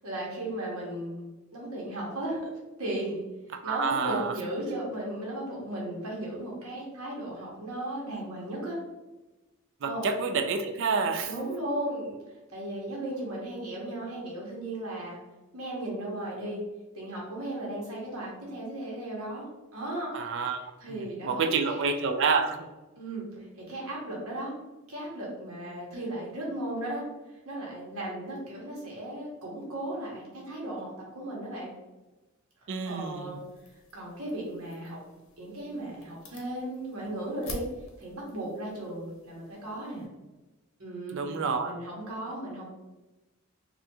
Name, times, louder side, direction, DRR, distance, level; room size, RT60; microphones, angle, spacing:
voice 1, 0.0-2.4 2.8-3.2 3.6-8.8 9.8-10.1 11.3-15.2 15.5-16.6 16.9-19.5 19.7-20.1 20.8-21.9 23.0-24.5 24.9-31.7 32.8-33.4 33.9-35.0 35.4-37.6 38.0-40.1 40.8-41.2 41.6-42.6, right 1 dB, 75° right, -3 dB, 1.1 m, -36 dB
voice 2, 3.6-4.3 9.8-11.3 20.1-20.6 21.2-22.6 32.7-33.3 41.1-41.7, right 5 dB, 55° right, 6 dB, 0.4 m, -28 dB
sound 1, 32.9-40.1, left 2 dB, 65° left, 0.7 m, -49 dB
3.4 x 2.5 x 2.9 m, 1.1 s
head